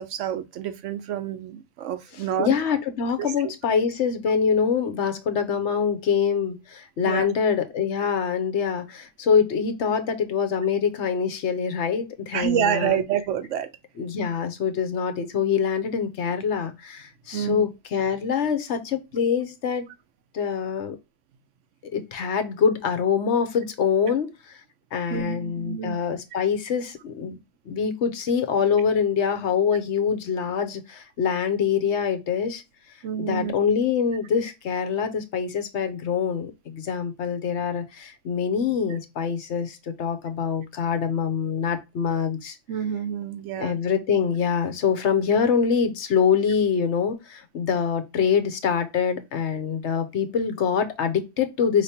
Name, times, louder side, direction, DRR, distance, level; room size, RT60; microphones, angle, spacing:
voice 1, 0.0-2.8 3.2-3.5 7.0-7.3 12.3-13.7 17.3-17.7 25.1-26.0 33.0-33.5 42.7-43.8, right 9 dB, 70° right, 0.9 m, -28 dB
voice 2, 2.4-13.0 14.0-19.9 20.3-21.0 21.9-24.6 24.9-27.4 27.6-32.6 33.2-42.6 43.6-51.8, left 6 dB, 60° left, 1.0 m, -25 dB
5.0 x 3.4 x 2.7 m
omnidirectional pair, 1.4 m